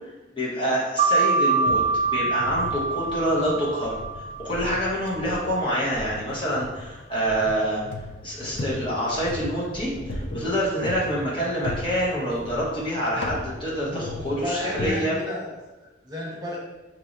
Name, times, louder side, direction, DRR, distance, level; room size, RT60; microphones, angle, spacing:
voice 1, 0.3-1.8 2.1-7.8 8.2-15.2, equal, 25° left, -6 dB, 1.0 m, -26 dB
sound 1, 1.0-6.2, right 4 dB, 40° right, 0.6 m, -25 dB
sound 2, 1.7-14.9, left 1 dB, 70° left, 0.5 m, -37 dB
voice 2, 13.8-15.5 16.0-16.6, left 1 dB, 20° right, -5 dB, 0.9 m, -32 dB
5.7 x 3.0 x 2.5 m, 1.1 s
head